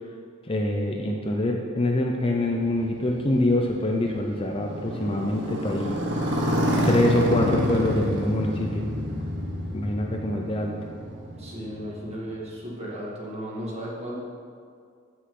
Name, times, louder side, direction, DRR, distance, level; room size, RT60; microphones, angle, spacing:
voice 1, 0.4-6.0 6.8-8.9 9.7-10.7, left 1 dB, 25° left, 1 dB, 0.6 m, -25 dB
Motorcycle, 2.6-12.4, equal, 55° right, 1.5 m, -28 dB
voice 2, 11.4-14.2, equal, 30° right, -5 dB, 2.1 m, -35 dB
15.5 x 6.4 x 3.9 m, 2.2 s
head